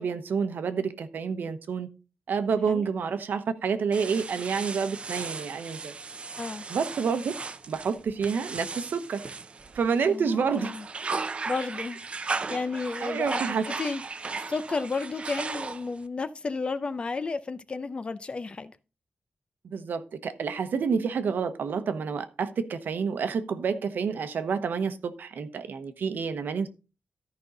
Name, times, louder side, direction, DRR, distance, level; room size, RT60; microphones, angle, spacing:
voice 1, 0.0-1.9 2.3-5.9 6.7-7.3 7.7-9.2 9.7-10.7 13.0-13.6 19.6-26.7, right 6 dB, 80° right, 1.0 m, -29 dB
sound 1, 3.9-10.1 10.5-16.1, right 4 dB, 35° right, 0.6 m, -36 dB
voice 2, 10.1-10.9 11.5-12.0 12.5-14.0 14.5-18.8, left 4 dB, 35° left, 0.5 m, -32 dB
13.5 x 5.4 x 3.9 m
wide cardioid pair, 165°, 3 cm